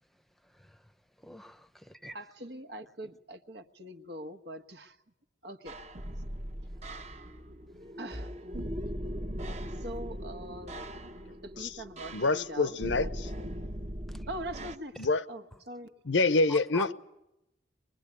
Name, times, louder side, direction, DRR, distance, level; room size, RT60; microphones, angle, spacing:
voice 1, 0.4-0.8 1.2-2.2 14.1-14.3 16.5-16.9, equal, ahead, 0.9 m, -44 dB
voice 2, 2.1-5.0 5.4-5.8 8.0-8.3 9.8-10.8 11.4-13.7 14.3-15.0 15.3-15.9, right 1 dB, 65° right, 1.4 m, -43 dB
sound 1, 5.7-14.8, equal, 35° right, 1.2 m, -39 dB
voice 3, 12.1-13.1 15.0-15.2 16.1-16.9, left 3 dB, 85° left, 0.9 m, -26 dB
23.5 x 21.5 x 9.8 m
head